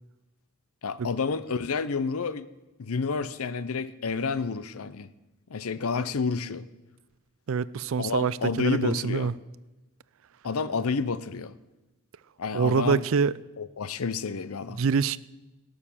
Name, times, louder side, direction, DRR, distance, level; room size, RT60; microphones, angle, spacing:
voice 1, 0.8-2.5 2.8-5.1 5.5-6.6 8.0-9.3 10.4-11.6 12.4-13.0 13.6-14.8, left 4 dB, 75° left, 0.6 m, -30 dB
voice 2, 7.5-9.3 12.5-13.3 14.8-15.2, right 5 dB, 65° right, 0.4 m, -25 dB
17.5 x 6.5 x 7.4 m
head